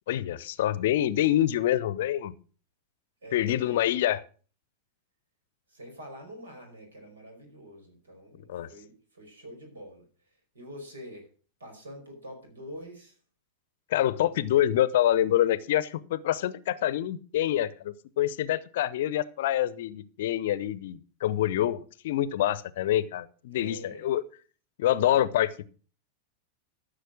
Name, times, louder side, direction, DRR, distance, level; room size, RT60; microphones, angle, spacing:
voice 1, 0.1-2.3 3.3-4.2 8.5-8.7 13.9-24.2 24.8-25.7, left 12 dB, 55° left, 18 dB, 0.7 m, -26 dB
voice 2, 3.2-4.1 5.7-11.3 11.6-13.2 23.5-24.1, equal, 70° right, 3 dB, 5.4 m, -46 dB
14.0 x 6.5 x 6.3 m, 0.41 s
figure-of-eight pair, 90°, 0 cm